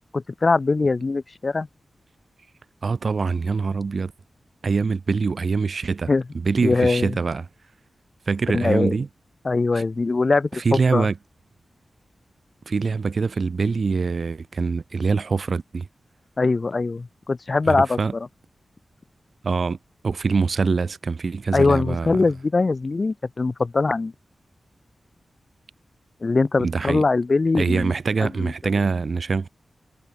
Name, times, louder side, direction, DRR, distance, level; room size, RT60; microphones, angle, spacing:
voice 1, 0.1-1.7 6.1-6.2 6.6-7.1 8.5-8.9 9.4-11.1 16.4-18.3 21.5-24.1 26.2-27.9 28.2-28.5, left 3 dB, 40° left, 1.6 m, -22 dB
voice 2, 2.8-4.1 4.6-6.1 6.4-7.5 8.3-9.1 9.7-9.8 10.5-11.2 12.7-15.9 17.7-18.1 19.4-19.8 20.0-22.3 26.6-27.0 27.6-29.5, right 4 dB, 55° right, 0.5 m, -24 dB
wide cardioid pair, 105°, 0 cm